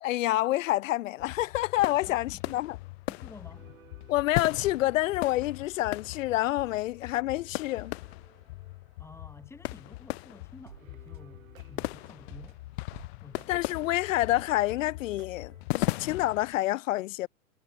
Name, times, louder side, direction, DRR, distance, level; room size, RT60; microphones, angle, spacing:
voice 1, 0.0-2.8 4.1-7.9 13.5-17.3, left 16 dB, 70° left, 0.5 m, -28 dB
sound 1, 1.2-16.6, left 21 dB, 50° left, 1.6 m, -38 dB
voice 2, 2.1-2.6 3.1-3.9 9.0-12.6 13.2-13.6, left 3 dB, 5° left, 1.8 m, -51 dB
sound 2, 3.4-6.2 7.0-10.1 10.3-10.4 10.6-15.7, right 10 dB, 75° right, 3.5 m, -57 dB
hypercardioid pair, 130°, 41 cm